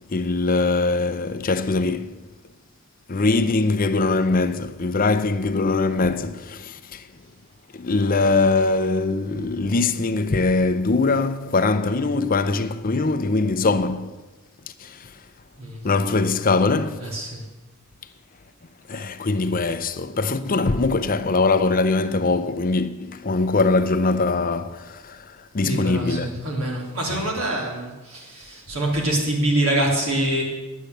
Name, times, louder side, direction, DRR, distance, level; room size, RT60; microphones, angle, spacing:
voice 1, 0.1-2.2 3.1-7.0 7.7-14.2 14.8-15.1 15.8-17.2 18.9-26.3 27.1-27.3, left 3 dB, 40° left, 0.6 m, -22 dB
voice 2, 17.0-17.4 25.6-30.4, right 1 dB, 70° right, 3.4 m, -25 dB
10.5 x 8.4 x 7.9 m
head